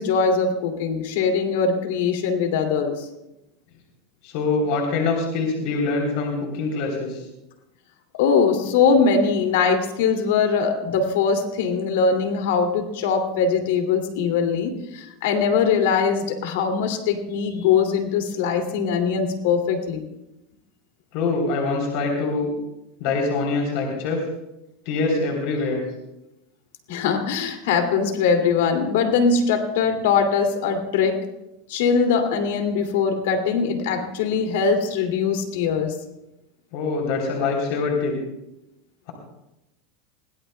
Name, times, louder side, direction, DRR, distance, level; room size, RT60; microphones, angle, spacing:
voice 1, 0.0-3.1 8.1-20.1 26.9-31.2 31.7-35.9, left 5 dB, 75° left, 5 dB, 2.4 m, -21 dB
voice 2, 4.2-7.2 21.1-22.5 23.0-24.2 24.8-25.8 36.7-38.1, left 3 dB, 60° left, 0 dB, 3.3 m, -24 dB
21.5 x 17.0 x 2.2 m, 0.91 s
supercardioid pair, 130°, 0 cm